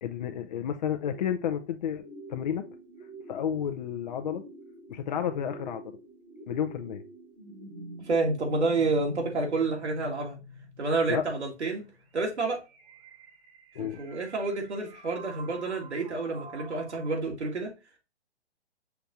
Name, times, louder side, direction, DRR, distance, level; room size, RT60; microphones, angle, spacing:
voice 1, 0.0-2.0 2.3-2.7 3.3-4.4 4.9-5.8 6.5-7.0 11.1-11.2 13.7-14.0, left 9 dB, 40° left, 0.5 m, -31 dB
sound 1, 1.0-17.2, right 1 dB, 55° right, 1.7 m, -47 dB
voice 2, 8.0-10.4 10.8-11.8 12.1-12.6 13.8-17.7, right 3 dB, 75° right, 2.1 m, -29 dB
5.8 x 3.4 x 2.6 m
figure-of-eight pair, 130°, 34 cm